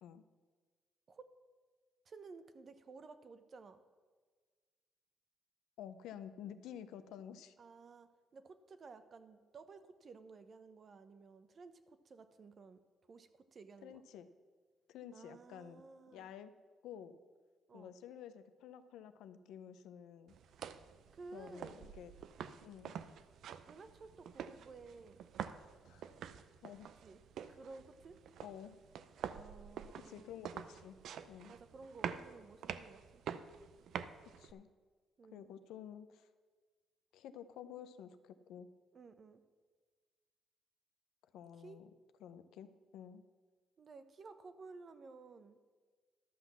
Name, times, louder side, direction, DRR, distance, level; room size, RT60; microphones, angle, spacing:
voice 1, 2.0-3.8 7.6-12.8 13.1-14.0 15.1-16.3 17.7-18.0 21.1-21.9 23.6-25.2 27.0-27.2 27.5-28.2 29.3-30.4 31.5-33.2 35.2-35.5 38.9-39.4 41.6-41.8 43.8-45.6, right 4 dB, 45° right, 11 dB, 0.8 m, -55 dB
voice 2, 5.8-7.5 13.8-14.3 14.9-15.8 16.1-16.5 16.8-17.2 17.7-20.3 21.3-22.1 22.6-23.0 25.8-26.1 26.6-26.9 27.4-27.6 28.4-28.8 30.0-31.0 31.3-31.5 34.2-34.7 35.3-36.3 37.1-38.7 41.3-41.9 42.2-43.2, left 9 dB, 90° left, 11 dB, 0.6 m, -51 dB
sound 1, 20.3-34.5, right 8 dB, 75° right, 0.5 m, -47 dB
12.0 x 5.9 x 7.1 m, 1.5 s
cardioid pair, 90°, 0 cm